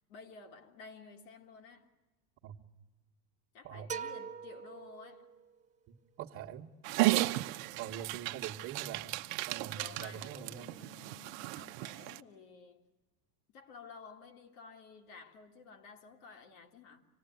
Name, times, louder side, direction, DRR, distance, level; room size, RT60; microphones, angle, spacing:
voice 1, 0.1-1.9 3.5-5.3 9.7-12.8 13.5-17.0, left 5 dB, 60° left, 2.8 m, -53 dB
sound 1, 3.9-5.6, right 6 dB, 15° right, 1.6 m, -43 dB
voice 2, 5.9-6.7 7.8-10.7, right 9 dB, 35° right, 1.6 m, -44 dB
Dog, 6.8-12.2, right 19 dB, 55° right, 0.9 m, -34 dB
26.0 x 18.5 x 9.3 m
supercardioid pair, 135°, 47 cm